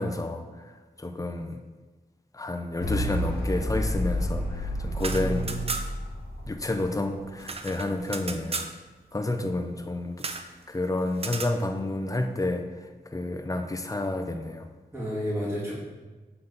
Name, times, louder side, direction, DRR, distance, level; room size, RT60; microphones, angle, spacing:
voice 1, 0.0-1.6 2.3-5.5 6.5-8.6 9.1-10.2 10.7-12.7 13.1-14.7, left 2 dB, 20° left, 6 dB, 0.6 m, -30 dB
sound 1, 2.8-7.3, equal, 75° left, 1.0 m, -30 dB
sound 2, 4.9-6.1 6.4-6.5 6.8-8.8 10.2-10.5 11.2-11.6, right 3 dB, 40° right, 0.5 m, -35 dB
voice 2, 5.1-5.6 14.9-15.7, right 1 dB, 15° right, -8 dB, 2.0 m, -31 dB
6.8 x 3.9 x 4.0 m, 1.3 s
wide cardioid pair, 65°, 16 cm